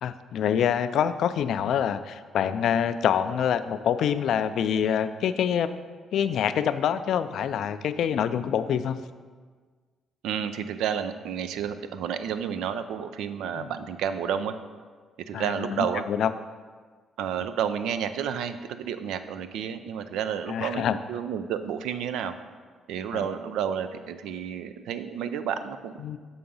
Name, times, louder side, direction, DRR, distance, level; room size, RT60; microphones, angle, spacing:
voice 1, 0.0-5.7 6.1-9.0 13.6-13.7 15.3-16.3 20.5-21.0 23.1-23.2 26.0-26.2, left 8 dB, 70° left, 12 dB, 0.3 m, -26 dB
voice 2, 10.2-14.5 15.3-16.1 17.2-22.4 22.9-26.0, right 8 dB, 85° right, 10 dB, 0.4 m, -31 dB
7.0 x 3.8 x 5.4 m, 1.5 s
cardioid pair, 90°, 0 cm